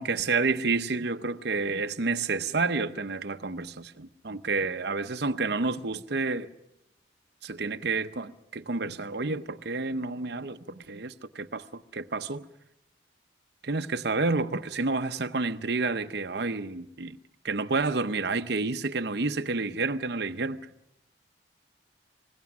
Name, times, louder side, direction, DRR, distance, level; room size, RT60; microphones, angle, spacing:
voice 1, 0.0-6.5 7.4-12.4 13.6-17.2 17.4-20.7, right 3 dB, 60° right, 0.8 m, -29 dB
26.0 x 21.0 x 6.0 m
head